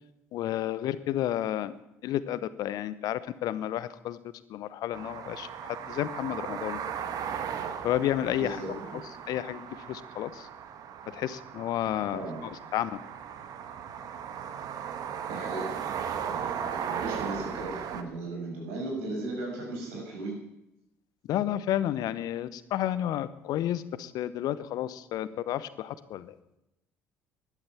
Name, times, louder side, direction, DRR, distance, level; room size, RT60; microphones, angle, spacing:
voice 1, 0.3-1.7 2.0-4.2 4.5-6.8 7.8-8.6 9.3-10.5 11.1-12.2 12.7-13.0 21.3-26.3, left 12 dB, 60° left, 16 dB, 0.9 m, -31 dB
sound 1, 4.9-18.0, right 8 dB, 55° right, 1.4 m, -37 dB
voice 2, 8.4-9.0 12.1-12.4 15.3-16.0 16.3-20.4, right 2 dB, 75° right, -1 dB, 6.2 m, -37 dB
12.0 x 11.5 x 7.2 m, 0.87 s
hypercardioid pair, 60°, 7 cm